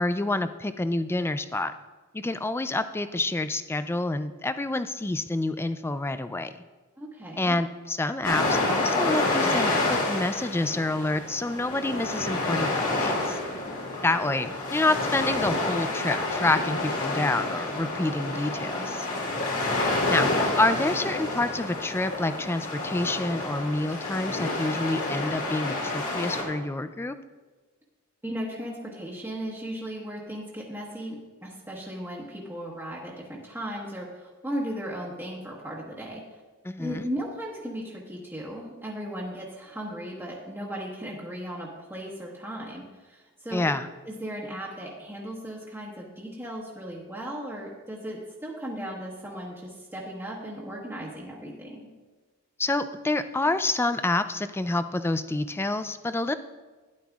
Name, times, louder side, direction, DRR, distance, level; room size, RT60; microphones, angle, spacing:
voice 1, 0.0-1.7 2.1-6.5 7.4-13.4 14.0-19.1 20.1-20.3 20.6-27.2 36.6-37.1 43.5-43.9 52.6-56.3, left 2 dB, 10° left, 11 dB, 0.3 m, -28 dB
voice 2, 7.0-7.6 17.9-18.4 28.2-36.2 36.8-43.7 44.1-51.9, equal, 10° right, -6 dB, 1.3 m, -36 dB
sound 1, 8.2-26.4, left 2 dB, 70° left, 2.4 m, -28 dB
12.5 x 10.5 x 2.4 m, 1.3 s
head